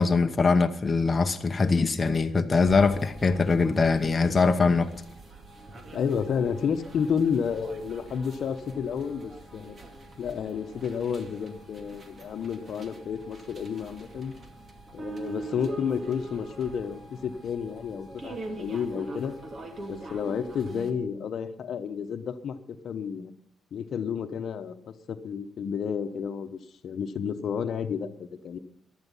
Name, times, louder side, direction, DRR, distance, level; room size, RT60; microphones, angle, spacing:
voice 1, 0.0-4.9, left 4 dB, 30° left, 0.9 m, -22 dB
sound 1, 2.6-20.9, right 2 dB, 40° right, 2.2 m, -43 dB
voice 2, 5.9-9.8 10.2-14.3 14.9-19.3 19.9-23.3 23.7-24.7 25.1-26.6 26.8-28.6, left 7 dB, 60° left, 1.0 m, -31 dB
14.5 x 11.5 x 5.5 m
cardioid pair, 90°, 0 cm